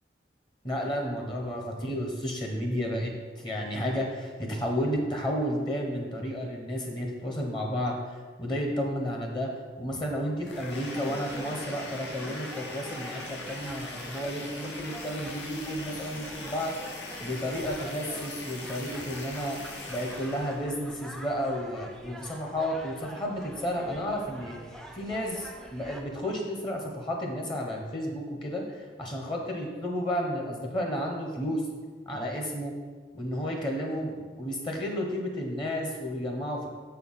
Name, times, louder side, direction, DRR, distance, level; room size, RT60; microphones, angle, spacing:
voice 1, 0.6-8.0 8.4-9.5 9.8-16.7 17.2-24.7 24.9-31.6 32.1-32.7 33.1-36.7, equal, 25° left, 1 dB, 0.9 m, -32 dB
sound 1, 10.4-20.6, left 6 dB, 80° left, 0.6 m, -46 dB
sound 2, 10.5-26.0, equal, 5° left, 0.4 m, -46 dB
sound 3, 10.7-20.7, equal, 65° left, 1.7 m, -42 dB
6.8 x 4.5 x 5.5 m, 1.4 s
head